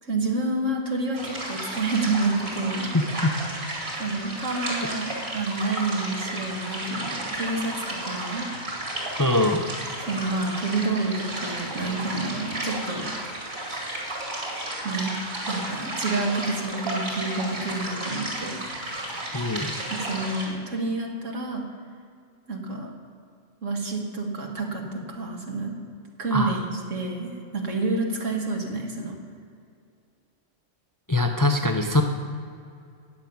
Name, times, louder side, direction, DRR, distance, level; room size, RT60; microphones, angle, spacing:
voice 1, 0.0-2.9 4.0-8.5 10.1-13.1 14.8-15.1 15.5-18.6 19.9-21.6 22.5-22.9 23.6-25.7 26.2-29.2, right 3 dB, 85° right, 0 dB, 2.2 m, -29 dB
sound 1, 1.1-20.5, right 1 dB, 55° right, 2.8 m, -33 dB
voice 2, 2.9-3.4 9.2-9.7 19.3-19.7 26.3-26.6 31.1-32.0, left 2 dB, 25° left, 4 dB, 0.5 m, -23 dB
10.5 x 7.2 x 9.4 m, 2.4 s
omnidirectional pair, 1.3 m